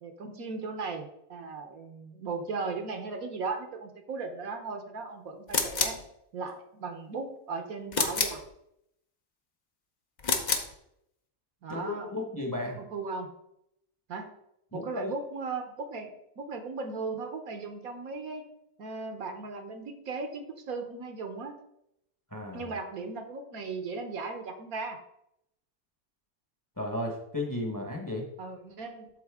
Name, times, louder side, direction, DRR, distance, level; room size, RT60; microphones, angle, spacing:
voice 1, 0.0-6.0 6.3-8.4 11.6-12.1 12.8-13.3 14.1-14.4 14.7-18.4 18.8-21.5 22.5-25.0 28.4-29.1, right 4 dB, 65° right, 6 dB, 1.3 m, -37 dB
sound 1, 5.5-6.0 7.9-8.4 10.2-10.7, left 4 dB, 40° left, 0.7 m, -28 dB
voice 2, 11.7-12.8 14.7-15.1 22.3-22.7 26.8-28.3, left 1 dB, 15° left, 2 dB, 1.0 m, -34 dB
12.5 x 4.2 x 3.6 m, 0.78 s
omnidirectional pair, 1.7 m